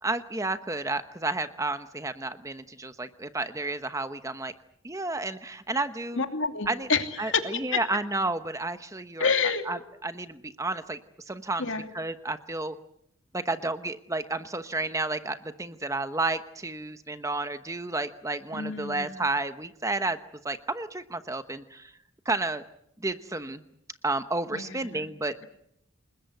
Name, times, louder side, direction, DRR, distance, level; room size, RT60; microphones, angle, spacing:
voice 1, 0.0-4.5 4.8-6.2 6.7-6.9 7.2-9.3 9.7-11.0 11.3-11.7 11.9-12.8 13.3-20.2 20.4-22.0 22.2-22.6 23.0-23.6 24.0-25.4, right 2 dB, 15° right, 10 dB, 1.0 m, -31 dB
voice 2, 6.1-7.6 9.2-9.6 11.6-11.9 18.5-19.1 24.5-25.1, left 5 dB, 65° left, 6 dB, 2.8 m, -28 dB
29.0 x 21.0 x 8.0 m, 0.75 s
head